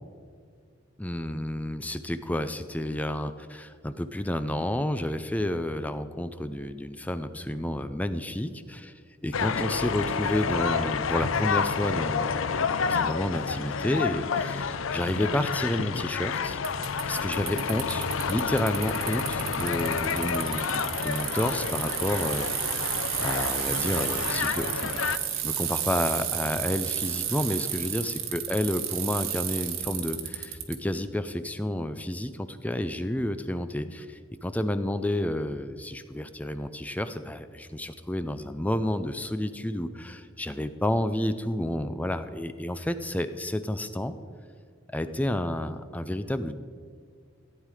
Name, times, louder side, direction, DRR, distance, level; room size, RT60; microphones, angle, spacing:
voice 1, 1.0-8.9 9.2-16.6 17.1-22.9 23.2-25.1 25.4-44.1 44.9-46.6, left 1 dB, 5° left, 11 dB, 0.4 m, -30 dB
sound 1, 9.3-25.2, left 5 dB, 75° left, 0.6 m, -29 dB
Bicycle, 16.6-30.8, right 10 dB, 85° right, 1.5 m, -32 dB
15.0 x 9.3 x 4.9 m, 2.1 s
head